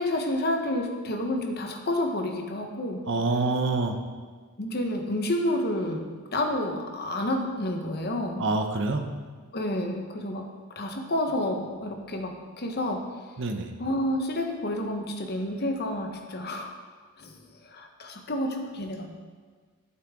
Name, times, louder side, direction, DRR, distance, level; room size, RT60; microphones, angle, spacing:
voice 1, 0.0-3.0 4.6-6.1 6.3-8.4 9.5-10.5 10.8-13.0 13.8-16.7 17.2-17.4 17.7-19.1, left 1 dB, 45° left, 3 dB, 1.1 m, -29 dB
voice 2, 3.1-4.0 8.4-9.1 13.4-13.7, right 3 dB, 55° right, 6 dB, 0.9 m, -26 dB
11.0 x 8.7 x 3.7 m, 1.5 s
head